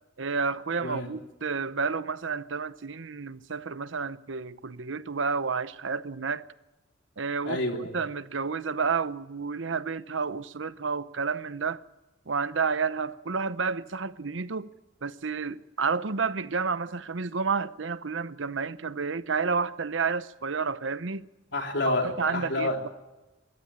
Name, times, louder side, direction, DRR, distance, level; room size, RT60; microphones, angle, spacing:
voice 1, 0.2-6.4 7.2-7.6 7.9-11.8 12.3-14.7 15.0-21.3 21.8-22.9, right 5 dB, 70° right, 0.8 m, -30 dB
voice 2, 0.8-1.1 7.5-8.0 21.5-22.8, left 2 dB, 65° left, 3.5 m, -29 dB
23.0 x 15.0 x 8.8 m
head